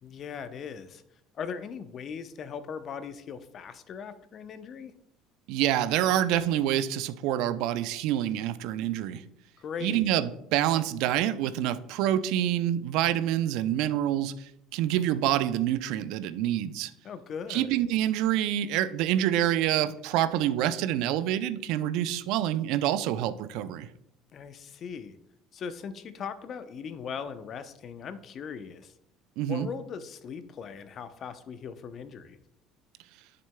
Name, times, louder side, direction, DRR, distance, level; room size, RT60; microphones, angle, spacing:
voice 1, 0.0-1.0 1.3-4.9 9.6-10.1 17.0-17.8 24.3-25.2 25.5-28.9 29.5-32.4, left 6 dB, 45° left, 12 dB, 0.7 m, -39 dB
voice 2, 5.5-9.2 9.8-16.9 17.5-23.9 29.4-29.7, right 12 dB, 65° right, 13 dB, 0.5 m, -27 dB
10.5 x 6.7 x 2.2 m, 0.78 s
hypercardioid pair, 65°, 0 cm